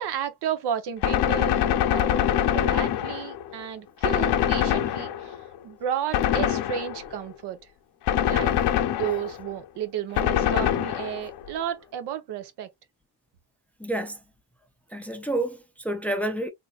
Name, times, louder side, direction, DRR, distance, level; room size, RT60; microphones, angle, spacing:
voice 1, 0.0-2.2 2.5-7.6 8.3-8.5 9.0-12.7, right 9 dB, 90° right, 0.8 m, -32 dB
Gunshot gunfire, 1.0-3.5 4.0-5.4 6.1-7.2 8.1-9.4 10.2-11.4, left 10 dB, 80° left, 0.7 m, -24 dB
voice 2, 13.8-14.2 14.9-16.5, right 1 dB, 5° left, 0.4 m, -29 dB
3.8 x 2.5 x 2.3 m
cardioid pair, 160°, 39 cm